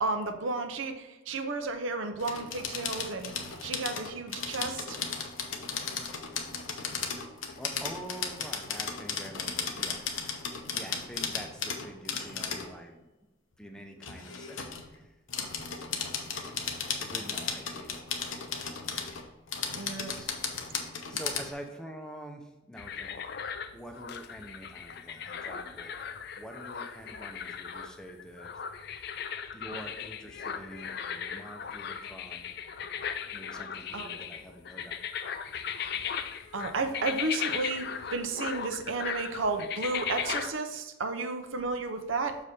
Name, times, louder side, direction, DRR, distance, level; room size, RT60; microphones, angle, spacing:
voice 1, 0.0-3.3 3.6-5.0 7.2-7.3 17.0-17.1 19.7-20.2 20.7-20.8 33.9-34.2 36.5-42.4, right 3 dB, 75° right, 6 dB, 0.7 m, -33 dB
sound 1, 2.2-12.7 14.0-14.9 15.3-21.5, left 6 dB, 75° left, 0.9 m, -35 dB
voice 2, 7.6-10.1 10.7-13.1 13.6-15.1 17.0-18.7 20.1-20.3 21.1-23.1 23.7-25.9 26.4-29.0 29.5-32.5 33.3-35.0, right 1 dB, 5° left, 3 dB, 0.6 m, -46 dB
sound 2, 22.8-40.5, left 7 dB, 50° left, 0.4 m, -37 dB
6.5 x 4.9 x 4.2 m, 1.1 s
head